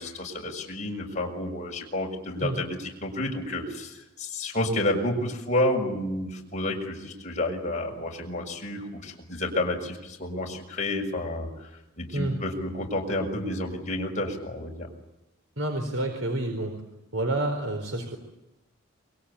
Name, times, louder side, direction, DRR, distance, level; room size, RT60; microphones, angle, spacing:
voice 1, 0.0-11.7 12.0-14.9, left 1 dB, 35° left, 1 dB, 6.5 m, -30 dB
voice 2, 15.6-16.7 17.1-18.2, right 1 dB, 70° right, 4 dB, 4.5 m, -28 dB
28.0 x 24.0 x 8.6 m, 0.95 s
head